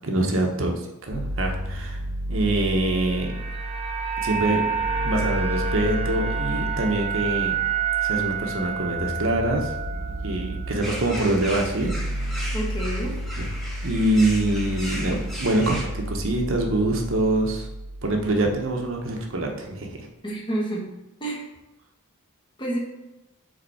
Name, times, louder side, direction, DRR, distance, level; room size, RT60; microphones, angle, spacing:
voice 1, 0.0-2.0 2.3-3.3 4.2-4.6 5.0-7.6 8.0-9.7 10.2-11.9 12.2-12.5 13.4-13.5 13.8-17.7 18.0-20.1, right 1 dB, 60° right, 2 dB, 1.0 m, -25 dB
sound 1, 1.1-19.1, right 1 dB, 45° left, 0.8 m, -32 dB
sound 2, 2.7-11.0 11.3-11.5, right 7 dB, 25° right, 0.5 m, -29 dB
sound 3, 10.8-15.8, equal, ahead, 1.1 m, -36 dB
voice 2, 12.5-13.2 20.2-20.9 21.2-21.4 22.6-22.8, right 1 dB, 20° left, -2 dB, 1.2 m, -28 dB
5.1 x 4.0 x 4.7 m, 0.98 s
head